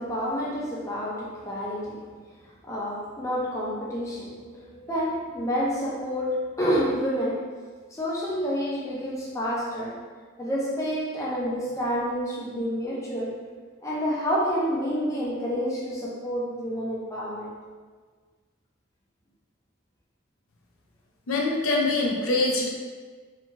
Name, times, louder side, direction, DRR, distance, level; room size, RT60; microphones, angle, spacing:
voice 1, 0.0-2.0 2.6-7.4 7.9-10.0 10.4-13.3 13.8-17.5, equal, 15° left, -6 dB, 0.4 m, -29 dB
voice 2, 21.3-22.7, left 2 dB, 80° left, -1 dB, 0.5 m, -24 dB
2.8 x 2.3 x 2.8 m, 1.5 s
head